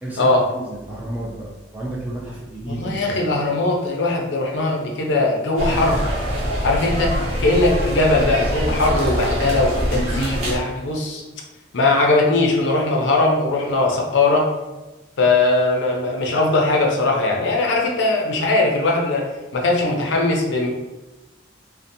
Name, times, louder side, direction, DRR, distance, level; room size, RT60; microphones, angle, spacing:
voice 1, 0.0-3.1 3.3-3.5, right 1 dB, 10° right, -5 dB, 0.4 m, -32 dB
voice 2, 2.7-6.0 6.6-7.1 7.4-11.2 11.7-14.5 15.2-19.2 19.5-20.7, left 2 dB, 60° left, 0 dB, 0.5 m, -19 dB
sound 1, 5.6-10.6, equal, 85° right, 0.7 m, -24 dB
2.7 x 2.1 x 2.6 m, 1.1 s
head